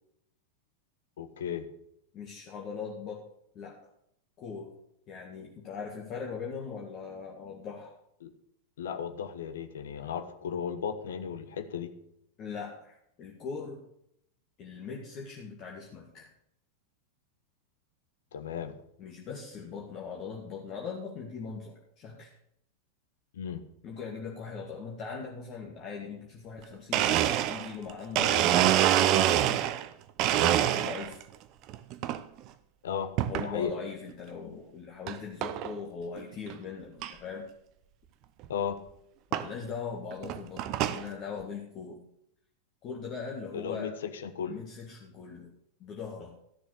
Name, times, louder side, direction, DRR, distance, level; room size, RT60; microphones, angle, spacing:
voice 1, 1.2-1.7 8.2-8.3 8.8-11.9 18.3-18.8 23.3-23.6 32.8-33.1 33.4-33.7 38.5-38.8 43.5-44.6, left 7 dB, 60° left, 9 dB, 1.1 m, -35 dB
voice 2, 2.1-3.2 3.6-3.8 4.4-4.7 5.1-7.9 12.4-13.8 14.6-16.3 19.0-22.3 23.8-29.6 30.4-31.2 33.2-37.5 39.3-42.0 42.8-43.9 44.5-45.5 45.8-46.3, left 5 dB, 35° left, -2 dB, 1.9 m, -40 dB
Domestic sounds home sounds, 26.6-26.7 26.9-29.9 30.2-31.2 31.7-32.2 33.2-33.5 34.1-34.2 35.1-35.2 35.4-35.7 36.2-36.3 36.5-36.6 37.0-37.1 38.4-38.5 39.3-39.5 40.1-41.0, right 12 dB, 40° right, 0.6 m, -26 dB
13.0 x 6.8 x 6.6 m, 0.73 s
figure-of-eight pair, 90°, 0 cm